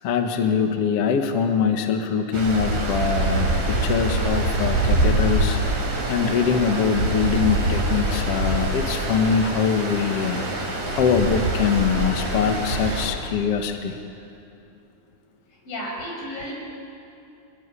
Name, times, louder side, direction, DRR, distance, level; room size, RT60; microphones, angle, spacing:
voice 1, 0.0-5.6 6.1-10.6 10.9-14.0, left 6 dB, 55° left, 4 dB, 2.1 m, -23 dB
Stream, 2.3-13.1, right 2 dB, 80° right, 6.3 m, -24 dB
voice 2, 15.7-16.5, equal, 80° left, -1 dB, 8.1 m, -33 dB
26.0 x 21.5 x 9.9 m, 2.7 s
omnidirectional pair, 3.9 m